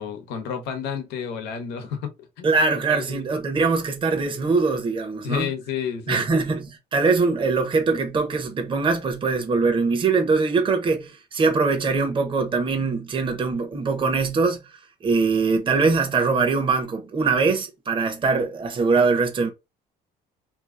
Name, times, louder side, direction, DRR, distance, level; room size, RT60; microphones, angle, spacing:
voice 1, 0.0-2.1 2.4-3.2 5.2-6.3, left 7 dB, 90° left, 0.9 m, -31 dB
voice 2, 2.4-5.5 6.1-14.6 15.0-19.5, right 4 dB, 30° right, 0.9 m, -22 dB
2.8 x 2.6 x 3.6 m
cardioid pair, 110°, 17 cm